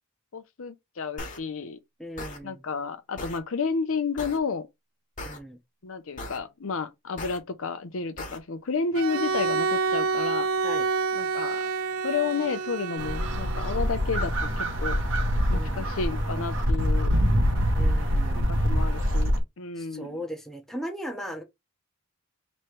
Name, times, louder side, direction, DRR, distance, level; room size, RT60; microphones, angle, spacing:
voice 1, 0.3-1.8 2.4-4.7 5.8-10.5 11.1-11.6 12.0-15.0 15.5-17.2 18.3-20.2, left 5 dB, 65° left, 0.6 m, -31 dB
sound 1, 1.2-1.4 2.2-2.4 3.2-3.4 4.2-4.4 5.2-5.4 6.2-6.4 7.2-7.4 8.2-8.4, left 2 dB, 35° left, 1.3 m, -37 dB
voice 2, 2.0-2.6 5.2-5.6 10.6-10.9 15.5-15.9 17.7-18.4 19.8-21.4, equal, ahead, 0.8 m, -37 dB
Bowed string instrument, 8.9-13.9, right 4 dB, 75° right, 0.4 m, -28 dB
sound 2, 13.0-19.4, equal, 60° right, 1.0 m, -25 dB
3.1 x 3.1 x 4.5 m
head